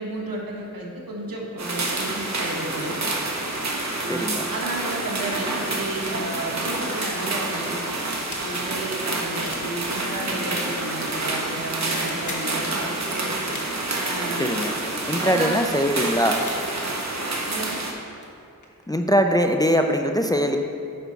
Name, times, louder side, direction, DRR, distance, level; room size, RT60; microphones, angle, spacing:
voice 1, 0.0-3.0 4.0-8.0 8.4-13.3 13.9-14.5 15.2-15.6 17.5-17.8, right 2 dB, 80° right, -2 dB, 1.3 m, -32 dB
sound 1, 1.6-17.9, right 2 dB, 55° right, 1.1 m, -28 dB
voice 2, 4.1-4.5 14.3-14.7 15.1-16.4 18.9-20.6, equal, 10° left, 4 dB, 0.4 m, -22 dB
sound 2, 8.1-8.5 9.4-9.7 10.7-10.9 11.9-12.5 13.5-13.7 14.2-14.7 15.7-15.8 16.4-16.6 18.0-18.1 18.2-19.5, left 3 dB, 55° left, 1.1 m, -39 dB
9.2 x 5.5 x 4.0 m, 2.6 s
wide cardioid pair, 65°, 34 cm